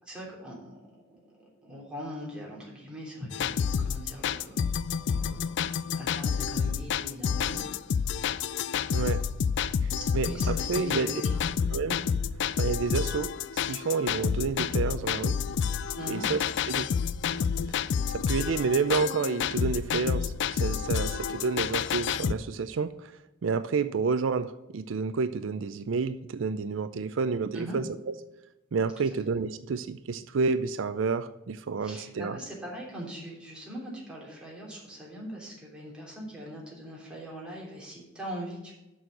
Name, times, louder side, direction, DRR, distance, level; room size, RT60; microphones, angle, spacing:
voice 1, 0.0-4.7 5.0-5.5 5.8-7.6 10.0-11.5 15.9-16.3 27.5-27.8 29.0-29.2 31.8-38.7, equal, 5° right, -5 dB, 3.2 m, -41 dB
sound 1, 3.3-22.4, left 7 dB, 60° left, 0.3 m, -29 dB
voice 2, 9.8-11.1 11.7-12.0 12.6-13.3 13.7-15.4 16.1-16.4 16.7-16.9 18.1-23.2 23.4-28.1 28.7-32.4, right 4 dB, 75° right, 12 dB, 0.5 m, -29 dB
7.0 x 6.3 x 7.6 m, 0.98 s
head